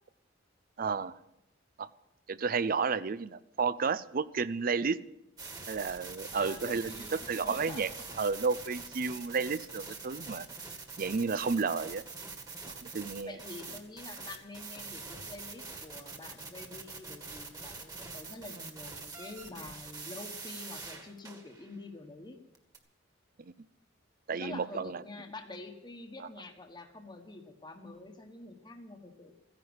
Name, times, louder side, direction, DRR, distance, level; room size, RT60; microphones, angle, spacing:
voice 1, 0.8-1.1 1.8-1.9 2.3-5.0 5.7-7.9 8.2-10.5 11.0-12.0 12.7-13.4 23.4-23.5 24.3-25.0, right 5 dB, 50° right, 16 dB, 0.5 m, -32 dB
sound 1, 5.4-21.8 22.5-22.8, right 4 dB, 20° right, 1.8 m, -44 dB
voice 2, 6.3-7.8 13.2-22.4 24.4-29.3, left 2 dB, 25° left, 4 dB, 1.3 m, -47 dB
15.0 x 10.5 x 7.9 m, 0.87 s
head